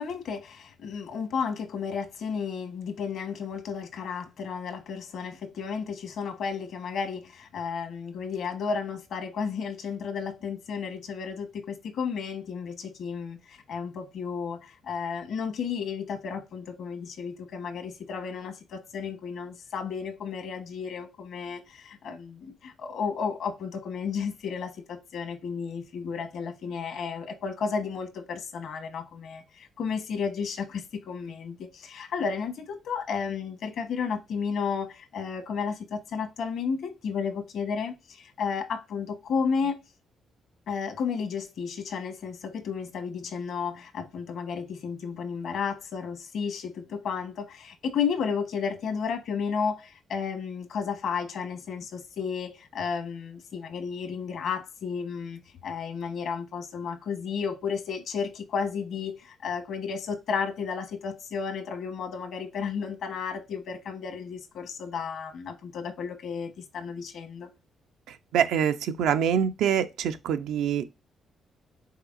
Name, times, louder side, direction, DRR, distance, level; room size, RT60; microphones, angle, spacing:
voice 1, 0.0-39.8 40.7-67.5, left 6 dB, 70° left, 1.1 m, -33 dB
voice 2, 68.1-70.8, right 8 dB, 85° right, 0.5 m, -25 dB
5.6 x 3.7 x 2.5 m
cardioid pair, 90°, 0 cm